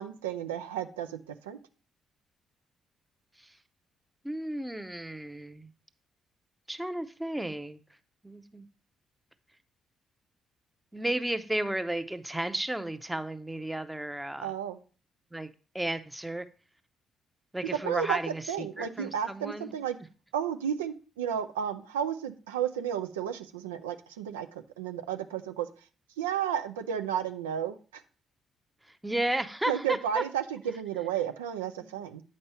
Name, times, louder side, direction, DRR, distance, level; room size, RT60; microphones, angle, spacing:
voice 1, 0.0-1.6 14.4-14.8 17.8-18.2 18.5-20.0 20.3-25.7 26.2-28.0 29.7-32.2, right 9 dB, 80° right, 8 dB, 0.4 m, -32 dB
voice 2, 4.2-5.7 6.7-7.8 8.2-8.7 10.9-14.5 15.3-16.5 17.5-19.7 28.8-30.2 31.8-32.1, right 1 dB, 10° right, 11 dB, 0.7 m, -33 dB
8.7 x 5.4 x 4.2 m, 0.36 s
figure-of-eight pair, 45°, 0 cm